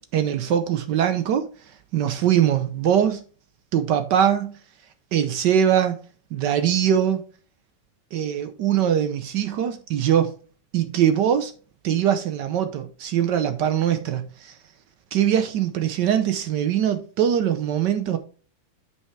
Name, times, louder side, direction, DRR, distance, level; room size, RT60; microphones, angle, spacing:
voice 1, 0.1-1.4 1.9-3.2 3.7-4.6 5.1-6.0 6.3-7.2 8.1-10.3 10.7-11.5 11.8-14.6 15.1-18.2, right 9 dB, 75° right, 1.3 m, -22 dB
9.1 x 5.5 x 3.2 m
omnidirectional pair, 2.0 m